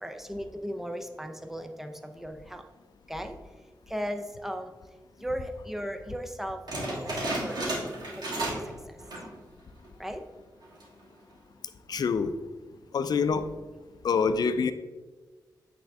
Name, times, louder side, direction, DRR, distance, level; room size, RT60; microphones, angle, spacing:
voice 1, 0.0-2.6 3.1-3.4 3.9-4.7 5.2-7.1 7.4-7.7 8.3-8.5 10.0-10.2, equal, 5° right, 6 dB, 0.6 m, -36 dB
sound 1, 6.7-8.7 9.0-9.4 9.8-9.9 10.6-11.0, right 1 dB, 65° right, 2.0 m, -32 dB
voice 2, 11.9-12.4 12.9-13.5 14.0-14.7, left 5 dB, 65° left, 11 dB, 0.4 m, -25 dB
8.6 x 3.6 x 3.5 m, 1.3 s
cardioid pair, 75°, 7 cm